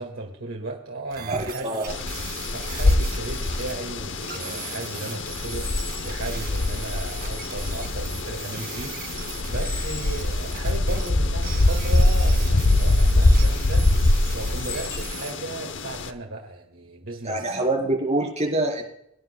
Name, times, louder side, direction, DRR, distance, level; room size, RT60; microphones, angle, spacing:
voice 1, 0.0-1.7 2.5-17.6, right 2 dB, 90° right, 1 dB, 1.9 m, -36 dB
sound 1, 1.1-11.1 11.4-15.3, right 7 dB, 50° right, 2.1 m, -39 dB
voice 2, 1.3-1.8 17.2-18.8, right 2 dB, 35° right, 1 dB, 4.0 m, -25 dB
sound 2, 1.9-16.1, left 2 dB, 65° left, 0.8 m, -23 dB
24.0 x 10.0 x 2.2 m, 0.79 s
head